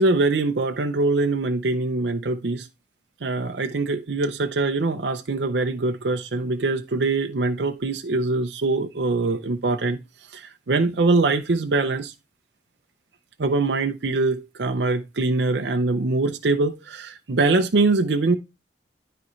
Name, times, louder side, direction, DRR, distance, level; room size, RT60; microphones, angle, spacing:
voice 1, 0.0-2.7 3.2-12.1 13.4-18.4, right 3 dB, 75° right, 0.6 m, -23 dB
12.0 x 4.2 x 3.2 m
head